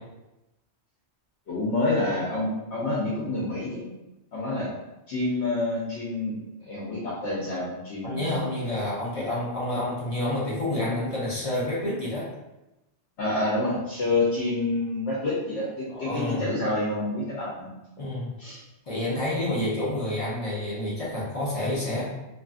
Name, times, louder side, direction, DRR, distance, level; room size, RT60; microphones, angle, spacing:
voice 1, 1.5-3.8 4.3-4.7 5.1-6.4 6.7-8.6 9.2-9.3 13.2-17.7 18.4-18.6, left 2 dB, 75° left, -6 dB, 1.0 m, -28 dB
voice 2, 8.0-12.3 15.9-16.5 18.0-18.3 18.9-22.0, left 1 dB, 40° left, -7 dB, 0.7 m, -29 dB
2.6 x 2.4 x 2.4 m, 0.98 s
omnidirectional pair, 1.2 m